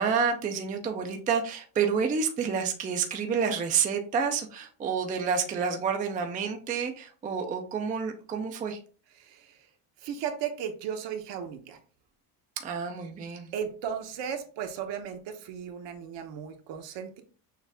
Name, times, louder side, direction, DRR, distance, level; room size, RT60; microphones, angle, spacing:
voice 1, 0.0-8.8 12.6-13.5, right 6 dB, 20° right, 5 dB, 0.4 m, -29 dB
voice 2, 9.2-9.7 10.0-11.8 13.5-17.2, right 8 dB, 65° right, 6 dB, 1.0 m, -36 dB
6.5 x 2.4 x 3.4 m, 0.40 s
cardioid pair, 155°, 47 cm